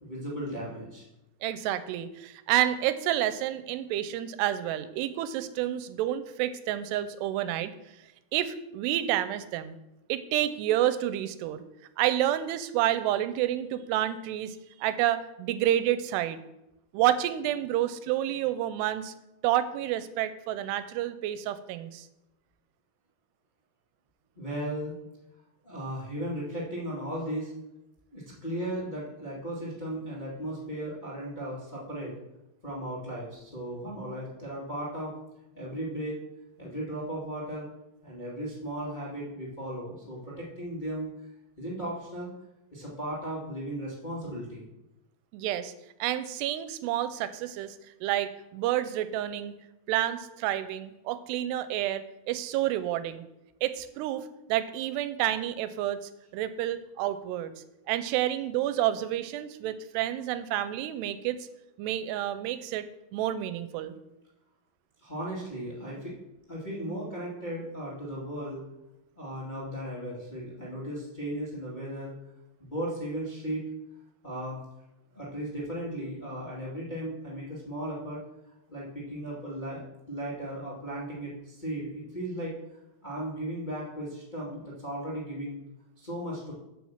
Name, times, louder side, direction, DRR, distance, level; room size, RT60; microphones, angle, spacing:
voice 1, 0.0-1.0 24.4-24.9 25.6-27.5 28.1-32.2 32.6-35.2 35.5-36.2 36.6-37.7 38.0-41.1 41.6-42.3 42.7-44.7 65.0-66.1 66.5-68.6 69.1-72.1 72.6-73.7 74.2-74.6 75.1-78.2 78.7-82.6 83.0-85.5 86.0-86.5, right 1 dB, 65° left, -5 dB, 0.4 m, -36 dB
voice 2, 1.4-7.7 8.3-9.8 10.1-11.6 12.0-16.4 16.9-19.1 19.4-22.1 45.3-45.7 46.0-47.8 48.0-49.5 49.9-53.2 53.6-56.0 56.3-57.5 57.9-61.4 61.8-62.8 63.1-63.9, right 12 dB, 90° right, 12 dB, 2.7 m, -29 dB
7.3 x 5.8 x 7.2 m, 0.92 s
omnidirectional pair, 4.7 m